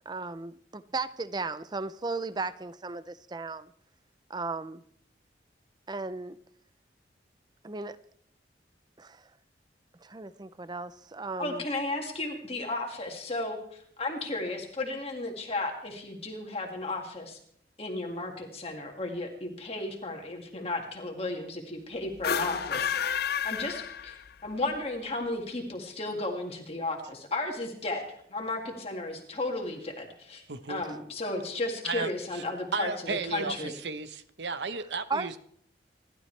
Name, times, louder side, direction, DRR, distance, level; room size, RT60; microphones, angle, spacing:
voice 1, 0.1-3.7 4.3-4.8 5.9-6.4 7.6-8.0 9.0-9.2 10.0-11.6 35.1-35.4, right 3 dB, 25° right, 15 dB, 0.5 m, -35 dB
voice 2, 11.4-17.4 17.8-23.2 23.4-30.4 30.7-33.7, left 2 dB, 35° left, 1 dB, 2.0 m, -34 dB
sound 1, 22.1-24.5, left 8 dB, 60° left, 0.5 m, -30 dB
voice 3, 30.5-30.8 31.8-32.4 32.7-35.4, right 4 dB, 75° right, 12 dB, 0.9 m, -34 dB
27.5 x 12.0 x 3.3 m, 0.66 s
head